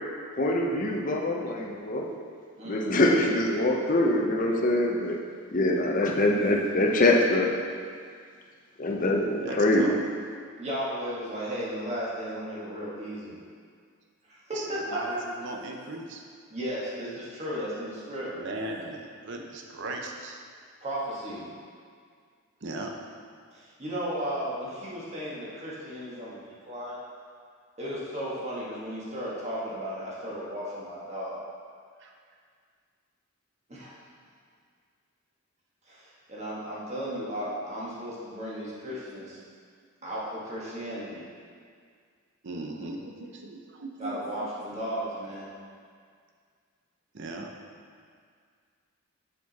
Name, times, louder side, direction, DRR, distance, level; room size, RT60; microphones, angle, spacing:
voice 1, 0.4-2.1 2.7-5.2 5.5-7.5 8.8-10.0, left 1 dB, 40° left, 0 dB, 0.6 m, -24 dB
voice 2, 2.6-2.9 6.0-6.1 10.6-13.3 14.3-15.2 16.5-18.3 20.8-21.5 23.5-27.0 27.8-31.4 33.7-33.9 35.9-39.4 40.0-41.3 44.0-45.5, equal, 30° right, -7 dB, 1.5 m, -35 dB
voice 3, 9.3-10.0 14.5-16.2 18.3-20.4 22.6-22.9 32.0-32.1 40.0-40.1 42.4-44.5 47.1-47.5, right 2 dB, 55° right, 1 dB, 0.7 m, -38 dB
7.2 x 4.6 x 4.1 m, 2.1 s
head